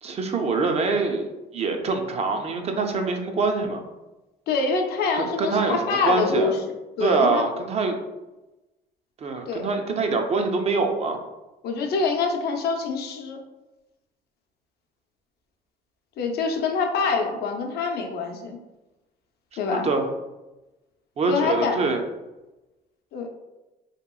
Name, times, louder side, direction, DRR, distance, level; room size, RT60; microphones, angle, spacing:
voice 1, 0.0-1.3 1.5-3.8 5.1-6.5 7.0-8.0 9.2-11.2 19.7-20.1 21.2-22.0, right 3 dB, 40° right, 4 dB, 0.4 m, -24 dB
voice 2, 4.5-6.6 7.0-7.5 9.5-9.7 11.6-13.4 16.2-18.6 19.6-19.9 21.3-21.8 23.1-23.3, left 4 dB, 70° left, 3 dB, 0.5 m, -25 dB
2.9 x 2.9 x 2.3 m, 1.0 s
cardioid pair, 110°, 17 cm